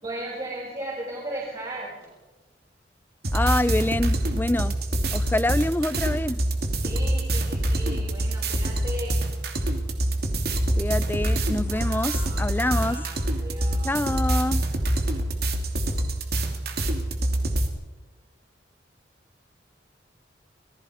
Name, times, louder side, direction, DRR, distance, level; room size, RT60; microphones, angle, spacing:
voice 1, 0.0-2.1 6.7-9.3 11.7-14.0, right 1 dB, 30° right, -7 dB, 6.0 m, -37 dB
sound 1, 3.2-17.7, right 1 dB, 60° right, 2.8 m, -26 dB
voice 2, 3.3-4.7 5.1-6.4 10.8-13.0 13.8-14.6, left 1 dB, 10° left, 16 dB, 0.5 m, -26 dB
27.5 x 19.0 x 5.0 m, 1.2 s
head